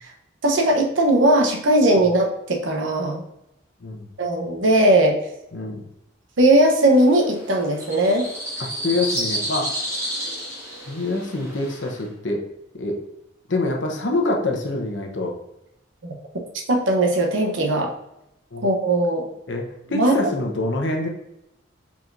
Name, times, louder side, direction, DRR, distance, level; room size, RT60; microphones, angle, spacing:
voice 1, 0.4-3.2 4.2-5.2 6.4-8.3 16.7-17.9 18.6-19.2 19.9-20.3, right 1 dB, 85° right, 1 dB, 0.9 m, -18 dB
voice 2, 5.5-5.9 8.8-9.7 10.9-12.4 12.8-13.0 13.5-15.4 18.5-18.6 19.5-21.1, left 2 dB, 75° left, 1 dB, 0.9 m, -25 dB
sound 1, 6.9-12.0, equal, 15° right, 1.3 m, -31 dB
4.7 x 4.2 x 2.6 m, 0.86 s
head